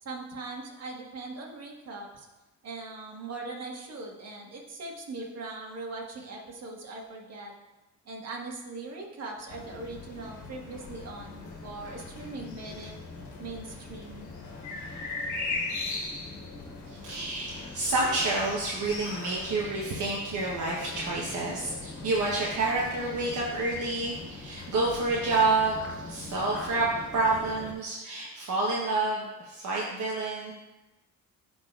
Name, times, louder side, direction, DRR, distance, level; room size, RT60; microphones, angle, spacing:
voice 1, 0.0-2.3 2.6-7.5 8.0-12.9 13.4-14.3, right 3 dB, 55° right, -1 dB, 1.5 m, -40 dB
sound 1, 9.5-27.7, left 3 dB, 70° left, 1.5 m, -40 dB
voice 2, 16.9-30.5, right 3 dB, 75° right, -4 dB, 1.1 m, -29 dB
12.0 x 4.0 x 2.4 m, 1.1 s
cardioid pair, 90°, 30 cm